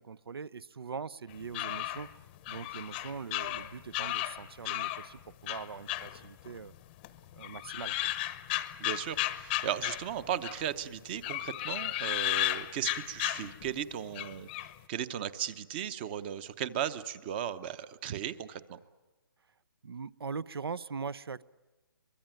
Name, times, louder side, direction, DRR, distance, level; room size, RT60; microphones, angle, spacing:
voice 1, 0.0-2.1 2.5-6.7 7.3-8.0 19.8-21.4, right 5 dB, 85° right, 21 dB, 0.7 m, -41 dB
sound 1, 1.3-5.1 5.5-6.8 7.0-10.7 11.2-13.8 14.1-14.7, left 16 dB, 25° left, 0.8 m, -34 dB
voice 2, 8.8-18.8, right 10 dB, 25° right, 15 dB, 0.8 m, -36 dB
23.5 x 22.5 x 9.1 m, 1.2 s
hypercardioid pair, 155°, 12 cm